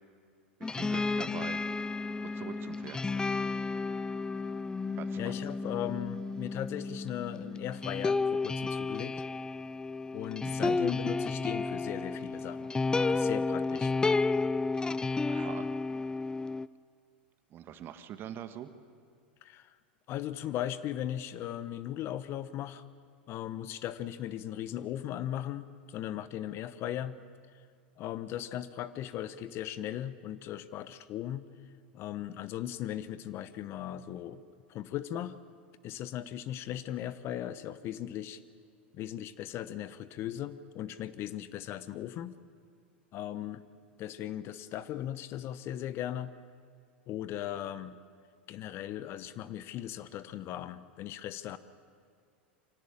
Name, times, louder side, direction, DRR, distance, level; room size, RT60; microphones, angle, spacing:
sound 1, 0.6-16.7, left 3 dB, 10° left, 0.5 m, -32 dB
voice 1, 0.6-1.6 2.2-3.3 5.0-5.3 10.4-10.8 15.3-15.7 17.5-18.7, right 10 dB, 40° right, 10 dB, 1.6 m, -43 dB
voice 2, 5.2-9.2 10.1-12.7 13.1-13.9 19.4-19.7 20.1-22.8 23.3-27.2 28.0-31.4 31.9-34.4 34.7-35.4 35.8-38.4 38.9-42.4 43.1-43.6 44.0-46.3 47.1-48.0 48.5-51.6, left 11 dB, 45° left, 14 dB, 1.0 m, -38 dB
25.0 x 17.0 x 8.7 m, 2.2 s
hypercardioid pair, 95°, 6 cm